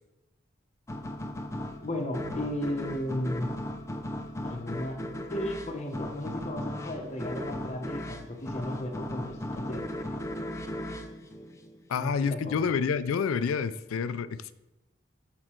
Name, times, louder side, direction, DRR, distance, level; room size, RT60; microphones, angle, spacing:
sound 1, 0.9-12.1, left 1 dB, 15° left, 0.4 m, -37 dB
voice 1, 1.8-3.5 4.4-5.0 5.3-10.0 11.9-12.6, left 1 dB, 35° left, 3 dB, 0.9 m, -35 dB
voice 2, 11.9-14.5, left 6 dB, 90° left, 14 dB, 0.4 m, -28 dB
6.6 x 6.0 x 4.4 m, 1.0 s
head